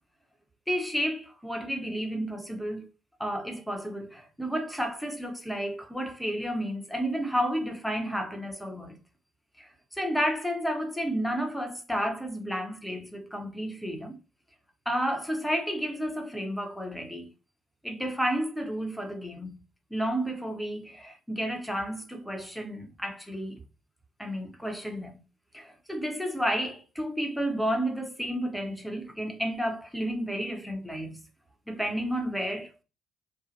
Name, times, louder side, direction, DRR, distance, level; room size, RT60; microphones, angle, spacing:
voice 1, 0.7-2.9 3.2-9.0 9.6-14.2 14.9-17.3 17.8-19.6 19.9-23.6 24.2-25.2 25.5-31.2 31.7-32.8, equal, 5° left, 0.9 m, -31 dB
2.6 x 2.4 x 2.6 m
hypercardioid pair, 45°, 0 cm